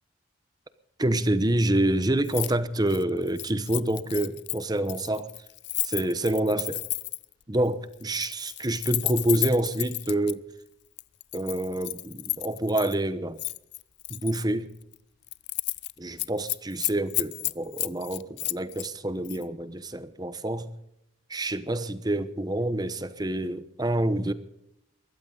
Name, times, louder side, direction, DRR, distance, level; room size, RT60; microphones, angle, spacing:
voice 1, 1.0-5.3 5.8-6.8 7.5-10.4 11.3-13.4 14.1-14.7 16.0-20.7 21.3-24.3, right 1 dB, 20° right, 0.9 m, -27 dB
Keys jangling, 2.2-2.5 2.8-7.3 8.0-10.3 11.0-13.0 13.4-14.4 14.8-15.0 15.3-15.9 16.2-18.9 19.2-19.4, left 20 dB, 60° left, 0.5 m, -32 dB
22.0 x 15.0 x 3.9 m
head